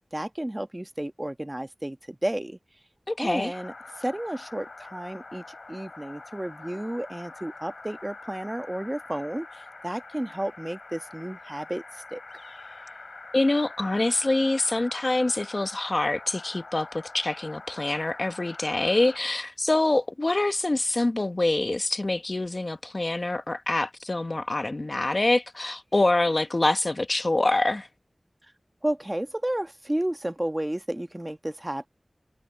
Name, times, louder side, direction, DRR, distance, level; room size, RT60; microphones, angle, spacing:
voice 1, 0.1-2.6 3.2-3.7 4.0-12.2 28.8-31.9, right 1 dB, 20° right, 1.2 m, -32 dB
voice 2, 3.1-3.5 13.3-27.9, left 2 dB, 50° left, 1.1 m, -25 dB
sound 1, 3.5-19.2, left 3 dB, 75° left, 3.6 m, -44 dB
wide cardioid pair, 50°, 0 cm